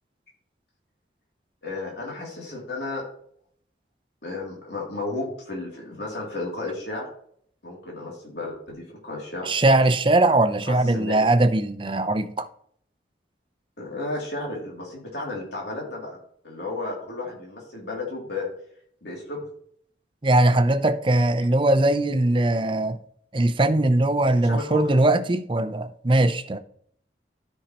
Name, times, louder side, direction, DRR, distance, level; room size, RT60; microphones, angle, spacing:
voice 1, 1.6-3.0 4.2-7.0 7.6-9.5 10.7-11.2 13.8-16.2 16.4-18.5 19.0-19.4 24.5-24.9, left 2 dB, 75° left, 2.7 m, -33 dB
voice 2, 9.4-12.5 20.2-23.0 23.3-26.6, right 2 dB, 30° right, 0.5 m, -20 dB
13.5 x 5.6 x 2.9 m
head